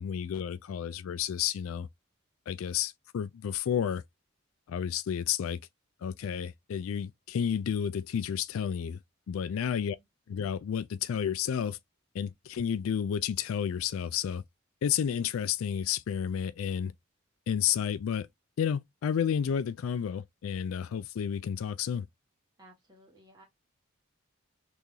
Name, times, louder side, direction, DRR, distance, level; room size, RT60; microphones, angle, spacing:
voice 1, 0.0-1.9 2.5-4.0 4.7-5.6 6.0-9.0 9.3-10.0 10.3-11.8 12.1-14.4 14.8-16.9 17.5-18.3 18.6-22.1, left 8 dB, 75° left, 0.3 m, -31 dB
voice 2, 9.6-10.1 22.6-23.4, right 1 dB, 20° right, 1.6 m, -57 dB
3.7 x 3.0 x 2.6 m
head